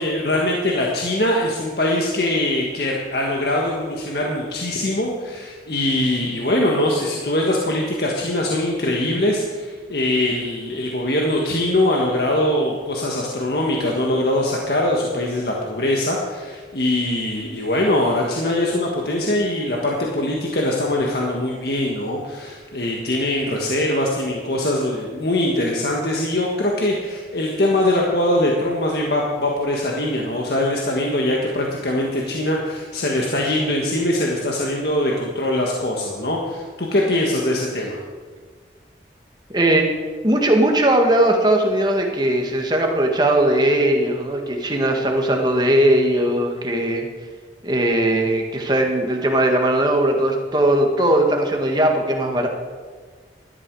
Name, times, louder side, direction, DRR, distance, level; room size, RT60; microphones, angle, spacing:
voice 1, 0.0-38.0, left 1 dB, 60° left, -2 dB, 1.6 m, -22 dB
voice 2, 39.5-39.9 40.2-47.1 47.6-52.5, right 1 dB, 25° right, 2 dB, 1.7 m, -19 dB
17.0 x 12.5 x 4.8 m, 1.5 s
head